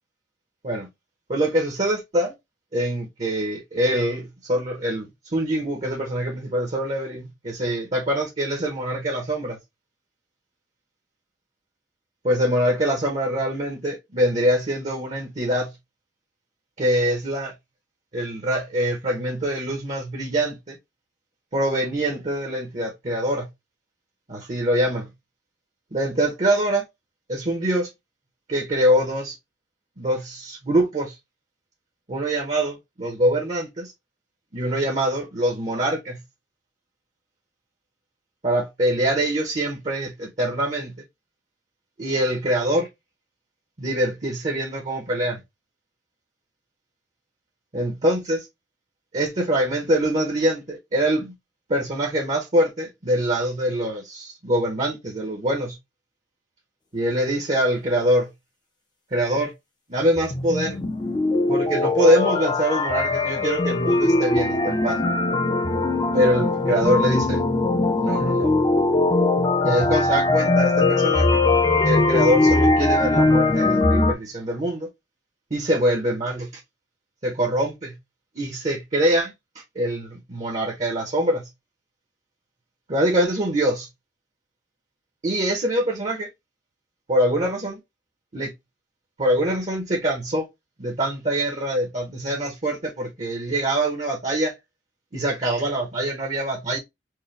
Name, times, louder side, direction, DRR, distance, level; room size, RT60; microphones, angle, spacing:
voice 1, 1.3-2.3 2.7-9.6 12.2-15.7 16.8-17.5 18.1-20.8 21.5-23.5 24.3-25.1 25.9-26.8 27.3-27.9 28.5-29.4 30.0-31.2 32.1-33.9 34.5-36.2 38.4-40.9 42.0-42.9 43.8-45.4 47.7-48.5 49.1-51.3 51.7-55.8 56.9-58.3 59.1-59.5 59.9-60.8 61.5-65.0 66.1-67.4 67.9-68.5 69.6-71.4 71.8-74.9 75.5-76.6 77.2-77.9 78.3-81.5 82.9-83.9 85.2-86.3 87.1-87.8 88.3-88.5 89.2-90.5 90.8-94.5 95.1-96.8, right 1 dB, 40° right, 0.9 m, -24 dB
sound 1, 60.2-74.1, left 2 dB, 25° left, 0.6 m, -20 dB
4.7 x 2.2 x 3.2 m
head